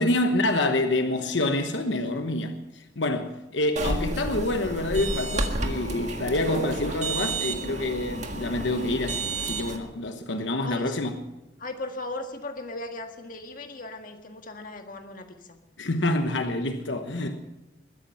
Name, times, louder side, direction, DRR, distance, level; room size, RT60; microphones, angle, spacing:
voice 1, 0.0-11.2 15.8-17.4, left 2 dB, 80° left, 1.1 m, -27 dB
sound 1, 3.8-9.8, right 2 dB, 40° right, 1.7 m, -31 dB
voice 2, 10.6-11.0 11.6-15.6, left 2 dB, 45° left, 1.6 m, -37 dB
21.5 x 10.5 x 5.7 m
head